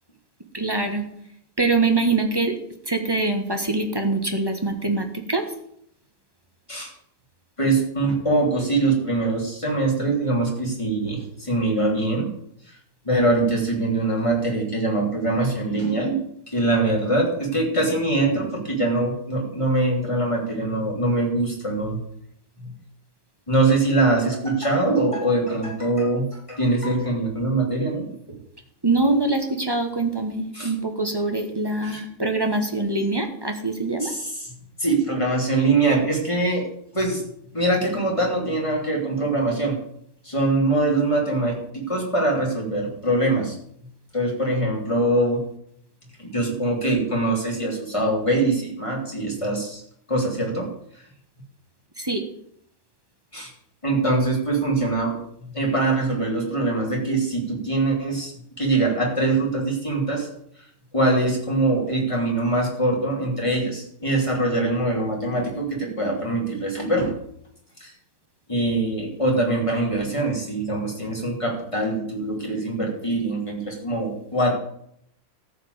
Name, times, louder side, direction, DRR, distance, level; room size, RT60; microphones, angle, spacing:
voice 1, 0.5-1.1 1.6-2.6 2.9-5.5 28.8-34.1 52.0-52.2, right 3 dB, 15° right, 4 dB, 1.0 m, -24 dB
voice 2, 7.6-12.3 13.0-16.2 16.5-22.0 22.6-22.7 23.5-28.4 30.5-30.7 31.8-32.0 34.0-34.3 34.8-36.7 36.9-37.2 37.5-39.8 40.2-43.5 44.1-45.4 46.2-49.8 50.1-50.7 53.3-53.5 53.8-58.3 58.6-60.3 60.9-67.1 67.8-67.9 68.5-74.5, right 2 dB, 15° left, -2 dB, 3.2 m, -23 dB
14.0 x 5.1 x 8.0 m, 0.71 s
omnidirectional pair, 2.1 m